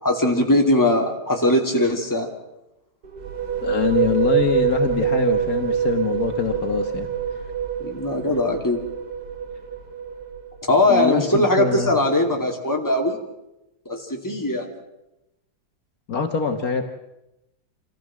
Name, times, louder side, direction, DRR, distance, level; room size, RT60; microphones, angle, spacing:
voice 1, 0.0-2.3 7.8-8.8 10.7-13.2 13.9-14.7, left 1 dB, 10° left, 1 dB, 2.7 m, -20 dB
sound 1, 3.0-10.7, right 8 dB, 65° right, 2.0 m, -25 dB
voice 2, 3.6-7.1 10.9-11.9 16.1-16.8, left 6 dB, 60° left, 5 dB, 1.8 m, -24 dB
27.0 x 15.0 x 7.6 m, 0.91 s
omnidirectional pair, 1.8 m